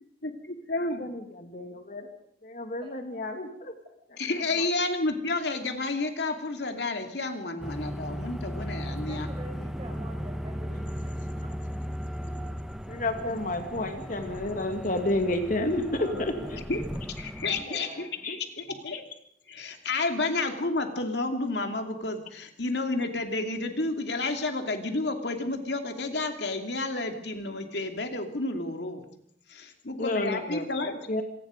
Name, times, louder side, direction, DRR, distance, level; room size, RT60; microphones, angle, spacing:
voice 1, 0.2-1.1 4.2-9.3 16.7-16.8 17.2-19.0 19.5-29.1 29.5-31.0, left 2 dB, 70° left, 5 dB, 2.6 m, -31 dB
voice 2, 1.0-2.1 2.4-3.8 4.1-4.2 4.6-4.7 10.7-10.8 12.9-16.6 18.2-18.4 30.0-30.7 31.1-31.2, left 1 dB, 50° left, 6 dB, 2.3 m, -30 dB
sound 1, 7.6-17.6, equal, 5° right, 1.2 m, -36 dB
voice 3, 8.8-11.6 16.0-16.6 17.5-18.1 18.6-18.8, right 1 dB, 30° right, 3 dB, 5.7 m, -45 dB
26.5 x 19.0 x 5.2 m, 0.67 s
head